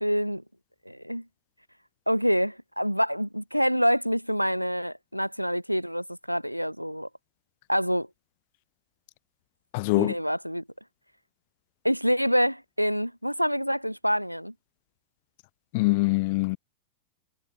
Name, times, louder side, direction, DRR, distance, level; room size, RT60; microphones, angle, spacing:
voice 1, 0.0-0.4 0.8-1.3 2.1-7.1 7.7-8.1 9.9-10.6 11.8-14.5, equal, 90° right, 1.2 m, -26 dB
voice 2, 9.7-10.1 15.7-16.6, left 26 dB, 50° left, 0.7 m, -23 dB
figure-of-eight pair, 90°, 0 cm